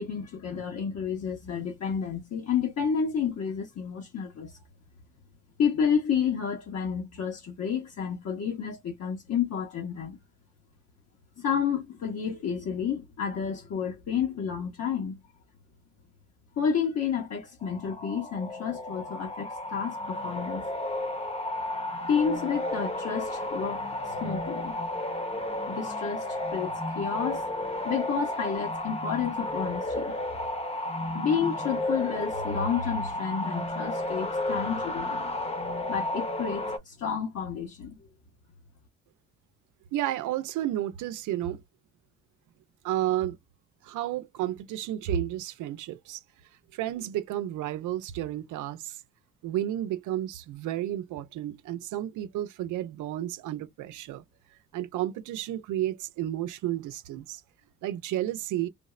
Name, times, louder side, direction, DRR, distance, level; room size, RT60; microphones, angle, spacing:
voice 1, 0.0-4.6 5.6-10.2 11.4-15.2 16.6-20.7 22.1-24.8 25.7-27.5 27.8-30.4 31.1-35.3 35.9-38.1, left 7 dB, 55° left, 1.0 m, -30 dB
sound 1, 17.6-36.8, left 1 dB, 20° left, 0.9 m, -32 dB
voice 2, 39.9-41.6 42.8-43.4 43.8-46.2 46.7-49.0 49.4-54.2 54.7-57.4 57.8-58.7, right 12 dB, 90° right, 0.6 m, -32 dB
3.5 x 2.0 x 2.4 m
cardioid pair, 90°, 30 cm